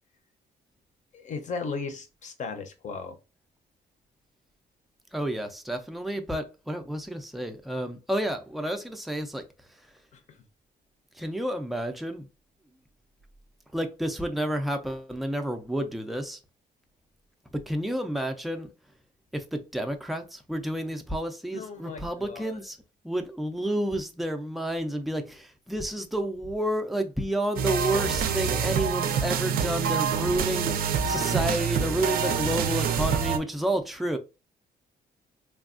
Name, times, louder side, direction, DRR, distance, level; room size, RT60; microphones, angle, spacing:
voice 1, 1.1-3.2 10.1-10.4 21.5-22.6, left 4 dB, 45° left, 0.6 m, -36 dB
voice 2, 5.1-9.4 11.2-12.3 13.7-16.4 17.5-18.7 19.3-22.8 23.0-34.2, right 1 dB, ahead, 0.4 m, -30 dB
sound 1, 27.6-33.4, right 7 dB, 60° right, 0.4 m, -26 dB
3.3 x 2.2 x 2.4 m
cardioid pair, 145°, 17 cm